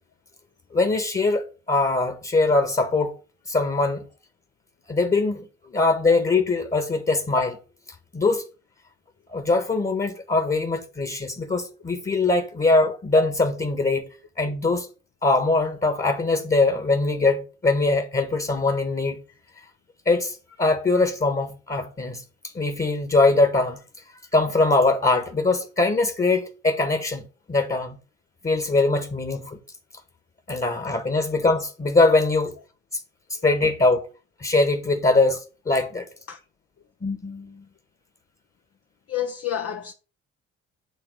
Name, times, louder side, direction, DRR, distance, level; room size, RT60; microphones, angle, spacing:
voice 1, 0.7-3.1 3.5-4.0 4.9-7.6 8.1-8.5 9.3-14.1 14.4-14.9 15.2-19.2 19.6-19.7 20.0-22.2 22.5-23.8 24.3-28.0 28.4-29.6 30.5-32.5 32.9-33.0 33.3-34.0 34.4-36.1 37.0-37.6, left 3 dB, 25° left, 1.6 m, -22 dB
voice 2, 39.1-39.9, left 10 dB, 50° left, 0.9 m, -29 dB
9.0 x 3.6 x 6.6 m
hypercardioid pair, 50°, 31 cm